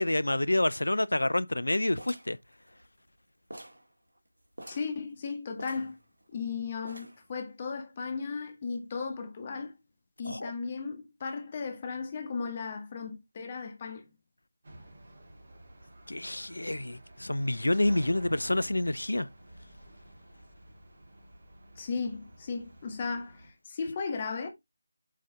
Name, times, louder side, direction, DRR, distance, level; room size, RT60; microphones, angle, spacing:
voice 1, 0.0-2.4 10.3-10.5 16.1-19.3, left 1 dB, 75° left, 0.6 m, -28 dB
sound 1, 2.0-3.2 3.5-3.9 4.2-4.3 4.5-5.0 5.6-6.4 6.8-7.3, right 1 dB, 75° right, 2.2 m, -47 dB
voice 2, 4.7-6.0 6.3-9.8 10.2-14.1 21.7-24.5, left 5 dB, 30° left, 1.7 m, -36 dB
sound 2, 14.6-23.5, right 1 dB, 50° right, 2.9 m, -51 dB
8.4 x 4.2 x 3.4 m
figure-of-eight pair, 160°, 0 cm